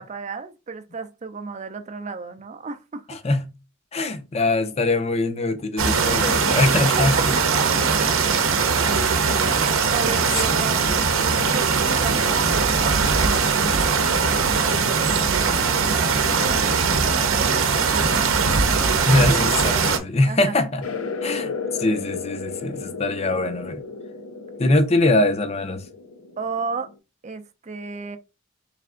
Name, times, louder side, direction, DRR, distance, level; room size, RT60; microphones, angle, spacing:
voice 1, 0.0-3.2 7.0-7.1 7.6-7.9 9.9-10.8 11.3-19.1 19.5-20.5 26.4-26.9 27.2-28.2, right 4 dB, 35° right, 0.5 m, -34 dB
voice 2, 3.1-3.5 3.9-7.3 8.3-8.4 10.7-11.0 19.1-20.9 21.2-21.5 21.8-23.8 24.6-25.9, left 2 dB, 30° left, 0.6 m, -22 dB
sound 1, 5.8-20.0, right 5 dB, 75° right, 0.7 m, -20 dB
sound 2, 20.8-27.0, left 4 dB, 80° left, 0.6 m, -34 dB
3.4 x 3.3 x 3.7 m
head